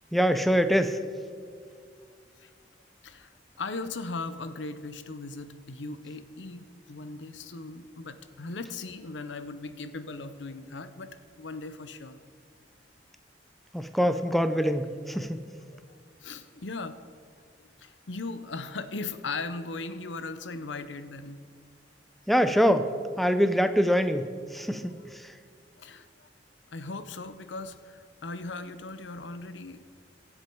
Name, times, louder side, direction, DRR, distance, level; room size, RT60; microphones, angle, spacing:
voice 1, 0.1-1.0 13.7-15.4 22.3-22.9 23.2-25.3, equal, ahead, 9 dB, 0.5 m, -24 dB
voice 2, 3.0-12.2 15.7-17.0 17.8-21.4 24.9-25.0 25.8-26.3 26.7-29.8, left 3 dB, 90° left, 11 dB, 0.8 m, -38 dB
23.0 x 7.7 x 4.6 m, 2.2 s
head